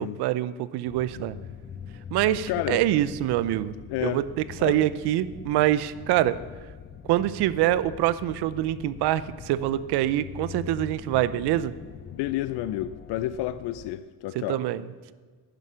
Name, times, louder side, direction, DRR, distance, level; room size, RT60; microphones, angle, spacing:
voice 1, 0.0-1.3 2.1-3.8 4.0-4.3 4.6-6.4 7.1-11.7 14.3-14.8, right 13 dB, 80° right, 16 dB, 0.7 m, -25 dB
sound 1, 0.8-13.9, left 8 dB, 30° left, 0.4 m, -43 dB
voice 2, 2.5-2.8 3.9-4.2 4.6-4.8 12.1-14.6, left 14 dB, 90° left, 14 dB, 0.6 m, -30 dB
11.5 x 10.0 x 5.7 m, 1.5 s
cardioid pair, 150°, 39 cm